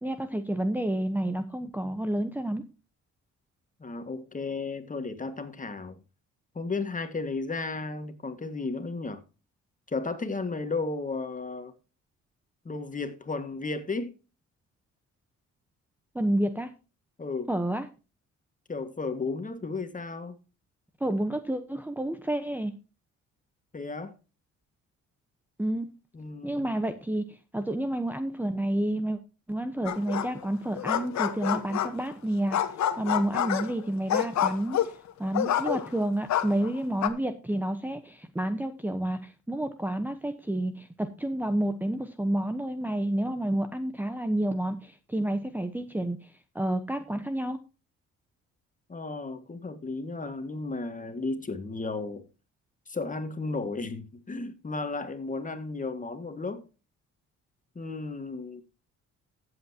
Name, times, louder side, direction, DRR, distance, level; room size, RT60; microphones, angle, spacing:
voice 1, 0.0-2.7 16.1-16.7 17.5-17.9 21.0-22.7 25.6-25.9 26.4-29.2 29.5-32.6 33.0-47.6, right 1 dB, 5° right, 1.0 m, -30 dB
voice 2, 3.8-6.0 6.6-9.2 9.9-11.7 12.7-14.1 17.2-17.5 18.7-20.4 23.7-24.1 26.1-26.7 48.9-52.3 52.9-56.6 57.8-58.6, left 3 dB, 25° left, 1.8 m, -34 dB
sound 1, 29.8-30.5 30.7-32.1 32.5-36.0 36.3-37.1, left 10 dB, 65° left, 1.2 m, -28 dB
14.5 x 8.1 x 2.9 m
cardioid pair, 90°, 30 cm